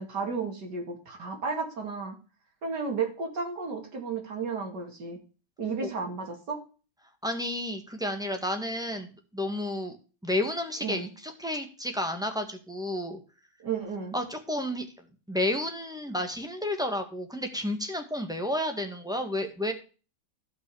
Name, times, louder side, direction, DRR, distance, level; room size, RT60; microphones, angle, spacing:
voice 1, 0.0-2.2 2.6-5.2 5.6-6.6 10.8-11.1 13.6-14.2, right 5 dB, 65° right, 3 dB, 3.0 m, -33 dB
voice 2, 7.2-10.0 10.2-13.2 14.1-14.8 15.3-19.7, left 1 dB, ahead, 5 dB, 1.5 m, -31 dB
15.0 x 5.8 x 4.8 m, 0.35 s
omnidirectional pair, 2.0 m